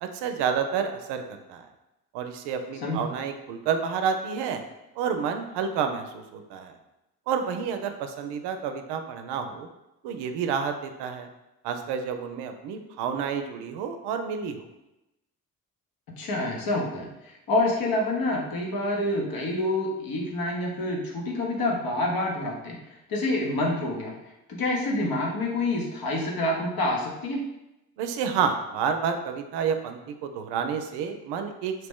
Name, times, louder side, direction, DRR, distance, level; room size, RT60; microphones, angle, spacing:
voice 1, 0.0-1.2 1.5-1.6 2.1-4.6 5.0-6.7 7.3-9.7 10.0-11.3 11.6-14.7 28.0-31.7, right 6 dB, 65° right, 7 dB, 0.5 m, -29 dB
voice 2, 16.2-22.8 23.1-24.1 24.5-27.4, left 2 dB, 55° left, -1 dB, 1.1 m, -27 dB
3.0 x 2.8 x 3.6 m, 0.93 s
hypercardioid pair, 45°, 43 cm